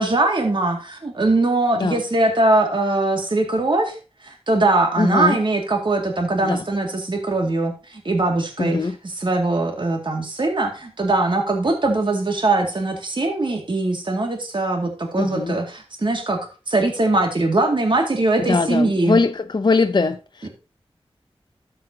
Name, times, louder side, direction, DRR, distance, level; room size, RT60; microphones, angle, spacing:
voice 1, 0.0-8.8 9.2-16.4 16.7-19.2 20.4-20.5, right 2 dB, 50° right, 2.1 m, -21 dB
voice 2, 5.0-5.4 6.4-6.6 8.6-9.0 15.2-15.6 18.4-20.5, left 4 dB, 45° left, 0.6 m, -21 dB
12.5 x 7.7 x 2.8 m
wide cardioid pair, 75°, 10 cm